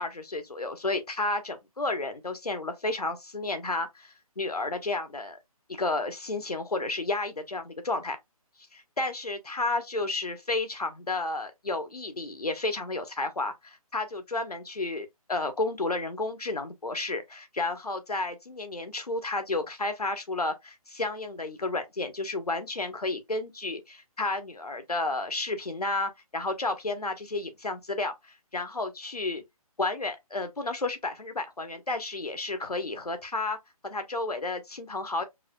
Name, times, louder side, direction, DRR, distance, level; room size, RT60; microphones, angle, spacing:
voice 1, 0.0-5.4 5.7-8.2 9.0-28.1 28.5-29.4 29.8-33.6 33.8-35.2, left 2 dB, 80° left, 1.1 m, -32 dB
4.8 x 2.8 x 2.2 m
figure-of-eight pair, 145°, 19 cm